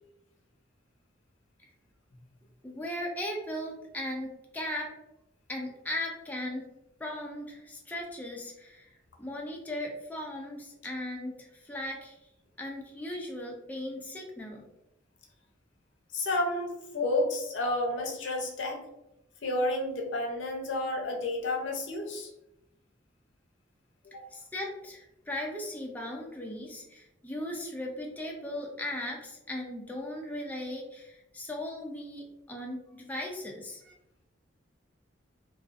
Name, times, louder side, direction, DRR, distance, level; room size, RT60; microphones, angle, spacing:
voice 1, 2.6-4.9 5.5-6.6 7.0-8.9 9.2-12.2 12.6-14.6 24.3-33.9, left 1 dB, 10° left, -1 dB, 0.3 m, -37 dB
voice 2, 16.1-18.8 19.4-22.3 24.1-24.2, left 2 dB, 85° left, 1 dB, 0.6 m, -31 dB
2.4 x 2.3 x 2.4 m, 0.87 s
head